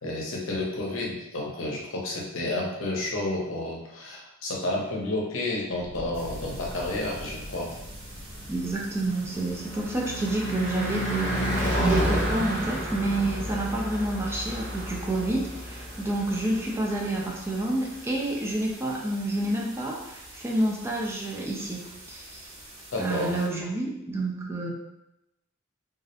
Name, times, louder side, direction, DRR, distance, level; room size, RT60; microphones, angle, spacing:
voice 1, 0.0-7.7 22.9-23.4, left 2 dB, 75° left, -1 dB, 0.6 m, -31 dB
Fire, 5.7-10.9, equal, 35° left, 0.8 m, -44 dB
sound 1, 6.1-23.5, right 1 dB, 85° right, 1.0 m, -47 dB
Car passing by / Truck / Engine, 7.6-17.9, equal, 30° right, 1.3 m, -31 dB
voice 2, 8.5-21.8 22.1-22.5 23.0-24.7, right 2 dB, 15° right, -3 dB, 0.3 m, -29 dB
2.3 x 2.0 x 2.8 m, 0.87 s
head